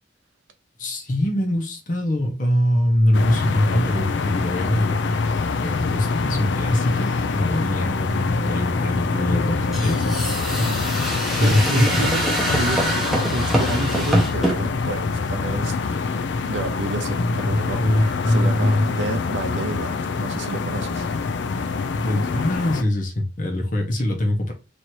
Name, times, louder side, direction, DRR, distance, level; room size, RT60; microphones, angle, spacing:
voice 1, 0.8-5.2 5.4-10.3 11.4-11.9 17.2-18.8 21.9-24.5, left 1 dB, 45° left, 0.9 m, -23 dB
sound 1, 3.1-22.8, left 4 dB, 70° left, 0.4 m, -25 dB
sound 2, 9.7-14.6, right 1 dB, ahead, 0.9 m, -24 dB
voice 2, 11.4-13.1 13.3-15.8 16.5-21.1, right 2 dB, 80° right, 0.6 m, -30 dB
3.1 x 2.7 x 4.4 m
head